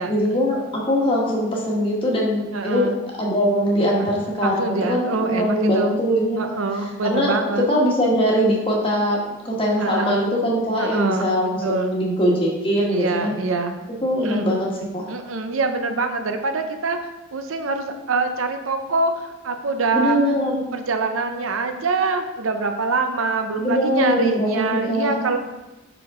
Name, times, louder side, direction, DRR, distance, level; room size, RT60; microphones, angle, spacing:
voice 1, 0.0-2.9 3.2-6.5 7.0-13.3 14.0-15.0 19.9-20.7 23.6-25.2, equal, 25° left, -3 dB, 1.3 m, -21 dB
voice 2, 2.5-3.0 4.0-4.1 4.4-6.0 6.4-7.6 9.8-10.2 10.8-11.3 11.6-12.0 12.9-13.8 14.2-14.5 15.1-17.0 17.3-20.2 20.7-25.4, right 3 dB, 90° right, 6 dB, 0.7 m, -24 dB
6.0 x 4.8 x 3.7 m, 1.0 s
head